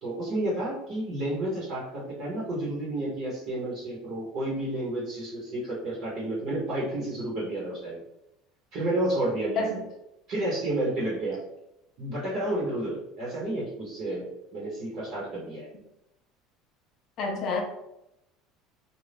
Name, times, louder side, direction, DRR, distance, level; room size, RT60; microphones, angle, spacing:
voice 1, 0.0-8.0 8.7-9.8 10.3-11.4 12.0-15.7, right 1 dB, 50° right, -6 dB, 1.2 m, -31 dB
voice 2, 17.2-17.6, left 3 dB, 45° left, 1 dB, 0.6 m, -28 dB
2.6 x 2.4 x 3.4 m, 0.86 s
cardioid pair, 140°, 0 cm